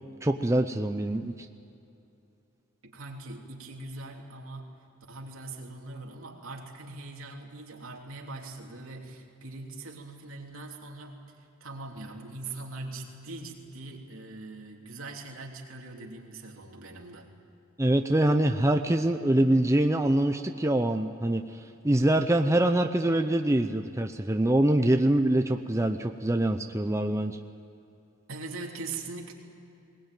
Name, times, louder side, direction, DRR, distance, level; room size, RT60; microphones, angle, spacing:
voice 1, 0.2-1.3 17.8-21.4 21.8-27.4, right 1 dB, 15° right, 6 dB, 0.7 m, -24 dB
voice 2, 2.8-4.8 5.1-17.3 24.8-24.9 28.3-29.3, right 2 dB, 75° right, 0 dB, 3.1 m, -41 dB
21.0 x 20.0 x 9.2 m, 2.7 s
head